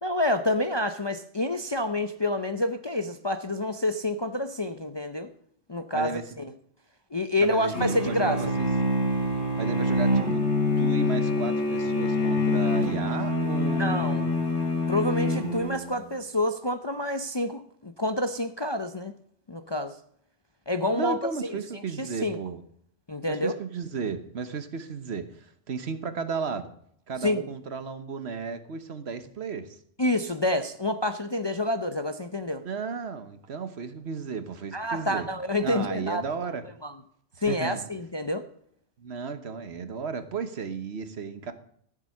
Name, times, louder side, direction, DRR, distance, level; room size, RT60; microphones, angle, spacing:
voice 1, 0.0-5.3 5.7-6.5 7.1-8.4 13.8-14.2 14.9-19.1 19.5-20.0 20.7-21.5 22.0-22.4 23.1-23.6 27.2-27.5 30.0-32.6 34.7-36.2 36.8-36.9 37.4-38.4, left 1 dB, 30° left, 8 dB, 0.6 m, -28 dB
voice 2, 5.9-6.2 7.4-8.7 9.6-10.5 10.8-14.3 20.9-22.6 23.3-26.7 27.1-29.8 32.6-35.3 35.6-36.6 37.5-37.9 39.0-41.5, right 5 dB, 60° right, 10 dB, 1.3 m, -34 dB
sound 1, 7.7-16.0, left 1 dB, 65° left, 2.5 m, -26 dB
14.0 x 7.4 x 6.3 m, 0.66 s
omnidirectional pair, 1.2 m